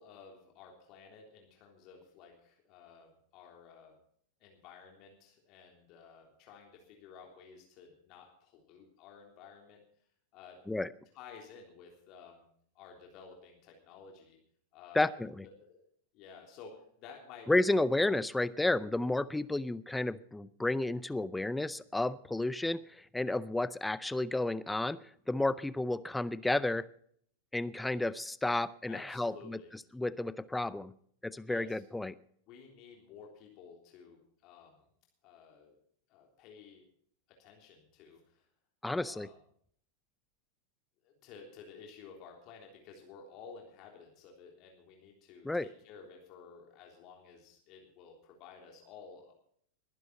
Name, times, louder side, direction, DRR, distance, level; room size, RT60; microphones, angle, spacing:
voice 1, 0.0-4.0 4.4-9.8 10.3-10.6 11.1-12.5 12.7-14.4 14.7-15.2 15.4-15.8 16.1-17.5 28.9-29.7 31.4-31.8 32.5-34.9 35.2-35.8 36.1-36.8 37.4-38.5 39.0-39.3 41.0-49.3, left 6 dB, 40° left, 1 dB, 3.4 m, -53 dB
voice 2, 14.9-15.4 17.5-26.9 27.5-29.6 29.9-30.9 31.2-32.1 38.8-39.3 45.4-45.6, left 2 dB, 5° left, 18 dB, 0.5 m, -32 dB
21.0 x 11.0 x 4.1 m, 0.62 s
figure-of-eight pair, 90°, 0 cm